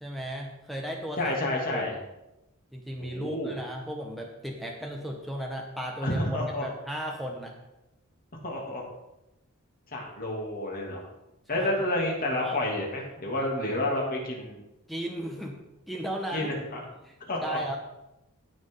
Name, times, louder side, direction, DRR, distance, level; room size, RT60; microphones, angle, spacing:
voice 1, 0.0-1.3 1.7-1.9 2.7-6.2 6.6-7.5 11.5-11.7 12.4-12.6 14.9-16.5 17.0-17.1 17.4-17.8, equal, ahead, 0 dB, 1.0 m, -35 dB
voice 2, 1.2-2.0 3.0-3.5 6.0-6.7 8.4-8.9 9.9-11.0 11.5-14.6 16.3-16.8 17.3-17.6, left 1 dB, 40° left, -2 dB, 2.7 m, -30 dB
17.0 x 6.1 x 3.8 m, 0.92 s
head